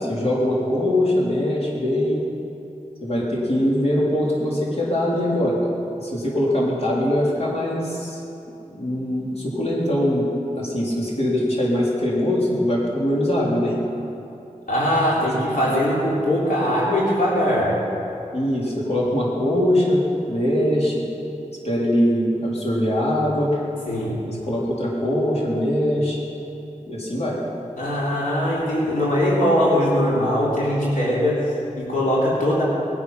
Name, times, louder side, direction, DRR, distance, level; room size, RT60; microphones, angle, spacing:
voice 1, 0.0-2.2 3.0-5.6 6.0-8.2 8.7-10.3 10.6-13.8 15.5-15.7 18.3-21.1 21.6-23.6 24.3-26.2 26.9-27.4, left 1 dB, 50° left, -5 dB, 4.0 m, -22 dB
voice 2, 14.7-17.8 23.9-24.2 27.8-32.6, equal, 85° left, -7 dB, 3.5 m, -21 dB
21.0 x 10.0 x 5.9 m, 2.8 s
wide cardioid pair, 70°, 13 cm